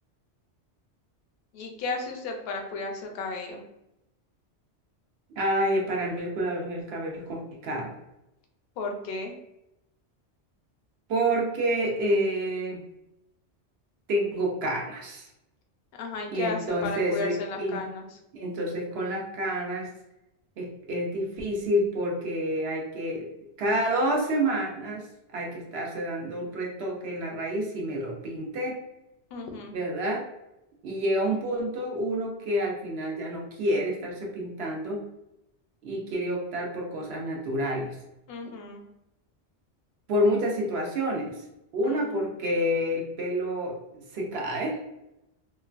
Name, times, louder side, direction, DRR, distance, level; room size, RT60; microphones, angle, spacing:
voice 1, 1.5-3.6 8.8-9.3 15.9-18.2 29.3-29.8 38.3-38.8 41.8-42.4, left 3 dB, 65° left, 2 dB, 0.8 m, -34 dB
voice 2, 5.3-7.9 11.1-12.8 14.1-15.3 16.3-17.8 18.3-19.9 20.6-23.3 23.6-25.1 25.3-28.7 29.7-30.2 30.8-35.0 35.8-38.0 40.1-41.4 41.7-44.8, equal, 65° right, 0 dB, 0.8 m, -28 dB
3.0 x 2.2 x 2.4 m, 0.88 s
omnidirectional pair, 1.2 m